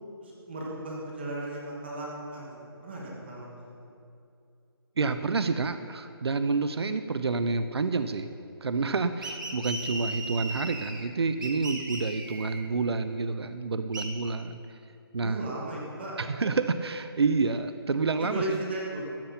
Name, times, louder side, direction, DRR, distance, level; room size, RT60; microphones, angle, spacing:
voice 1, 0.2-3.6 15.2-16.1 18.2-19.1, right 1 dB, 25° right, -3 dB, 1.5 m, -36 dB
voice 2, 5.0-8.3 8.6-14.6 15.1-15.4 16.2-18.6, right 4 dB, 80° right, 10 dB, 0.7 m, -28 dB
sound 1, 9.2-11.1 11.4-12.6 13.9-14.1, right 2 dB, 50° right, 1.8 m, -37 dB
14.0 x 8.5 x 5.8 m, 2.6 s
hypercardioid pair, 175°, 13 cm